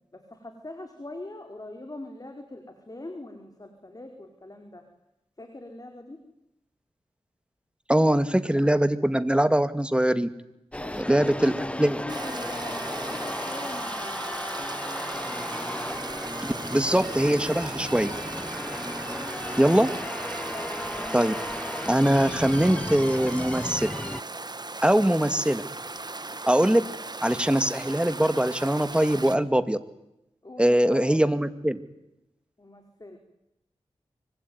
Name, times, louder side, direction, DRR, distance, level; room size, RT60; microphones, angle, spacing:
voice 1, 0.1-4.8 5.4-6.2 10.8-14.2 19.1-19.5 20.4-21.0 30.4-31.3 32.6-33.2, left 2 dB, 35° left, 5 dB, 4.7 m, -42 dB
voice 2, 7.9-10.3 11.0-11.5 11.8-12.0 16.4-18.1 19.6-19.9 21.1-21.4 21.8-23.9 24.8-25.6 26.5-26.8 27.2-29.8 30.6-31.8, right 1 dB, 10° right, 11 dB, 2.4 m, -22 dB
sound 1, 10.7-24.2, left 1 dB, 10° left, 1.0 m, -34 dB
Stream, 12.1-29.4, right 3 dB, 40° right, 1.7 m, -38 dB
25.0 x 25.0 x 9.7 m, 0.88 s
cardioid pair, 55°, 11 cm